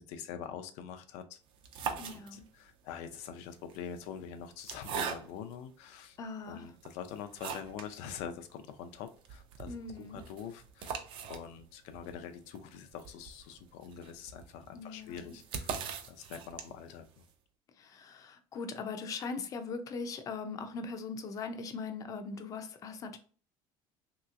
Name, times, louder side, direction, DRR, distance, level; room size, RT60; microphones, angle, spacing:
voice 1, 0.1-1.4 1.9-6.2 6.5-9.7 10.1-11.0 11.3-15.7 16.1-17.2, left 8 dB, 85° left, 0.5 m, -45 dB
sound 1, 1.5-2.7 3.6-5.6 6.2-6.3 6.8-8.0 8.3-8.4 8.6-8.7 9.1-17.0, right 7 dB, 50° right, 0.5 m, -41 dB
voice 2, 2.0-2.5 6.2-6.7 9.7-10.2 14.7-15.3 17.7-23.2, left 4 dB, 30° left, 0.4 m, -40 dB
3.2 x 2.9 x 2.4 m
cardioid pair, 165°, 11 cm